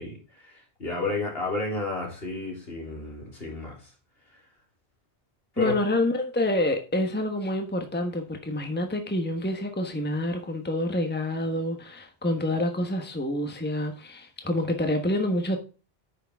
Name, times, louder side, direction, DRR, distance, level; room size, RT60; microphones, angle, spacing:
voice 1, 0.0-3.9 4.3-4.4 5.5-5.8, left 3 dB, 65° left, 3.8 m, -32 dB
voice 2, 5.6-15.6, left 1 dB, 10° left, 1.3 m, -27 dB
9.3 x 6.6 x 3.6 m
omnidirectional pair, 1.1 m